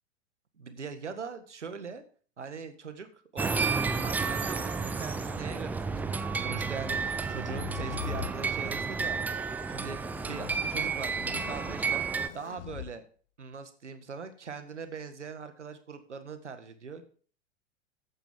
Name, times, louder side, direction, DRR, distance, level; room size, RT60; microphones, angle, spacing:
voice 1, 0.6-2.0 2.4-9.4 9.7-12.0 12.3-13.0 13.4-17.0, right 5 dB, 75° right, 9 dB, 1.8 m, -41 dB
sound 1, 3.4-12.3, right 5 dB, 5° right, 0.4 m, -31 dB
sound 2, 5.4-5.6 6.5-8.4 9.9-10.6 11.1-11.8 12.2-12.9, left 13 dB, 50° left, 0.6 m, -42 dB
14.0 x 8.9 x 3.7 m, 0.43 s
figure-of-eight pair, 95°, 36 cm